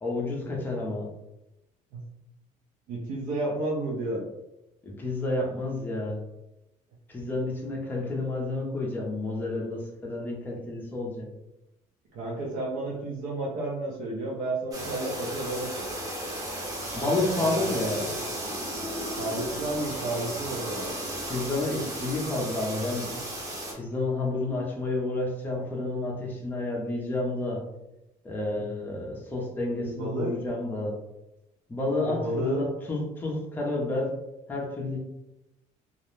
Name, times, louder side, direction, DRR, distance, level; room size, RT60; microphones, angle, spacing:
voice 1, 0.0-1.1 4.8-6.2 7.1-11.3 16.9-18.1 21.3-23.2 23.7-27.6 28.2-31.0 31.7-34.1 34.5-35.0, left 2 dB, 15° left, -2 dB, 0.4 m, -30 dB
voice 2, 2.9-4.2 7.3-7.4 12.1-15.7 17.4-17.9 19.2-21.0 28.6-28.7 29.8-30.4 32.1-32.6, right 2 dB, 75° right, -3 dB, 0.6 m, -32 dB
sound 1, 14.7-23.7, right 1 dB, 25° right, 0.7 m, -34 dB
2.3 x 2.0 x 3.0 m, 0.93 s
cardioid pair, 160°, 14 cm